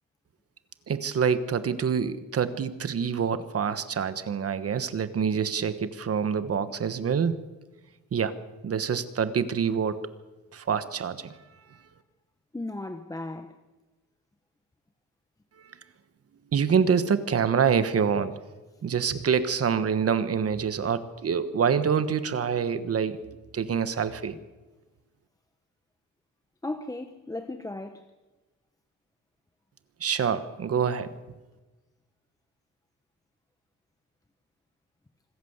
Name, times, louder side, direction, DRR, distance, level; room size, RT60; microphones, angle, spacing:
voice 1, 0.9-7.4 8.1-8.4 8.6-10.1 10.5-11.3 16.5-18.4 18.8-24.4 30.0-31.1, right 7 dB, 50° right, 1.3 m, -26 dB
voice 2, 12.5-13.5 26.6-28.0, left 2 dB, 10° left, 0.9 m, -35 dB
25.5 x 14.5 x 8.0 m
wide cardioid pair, 145°, 31 cm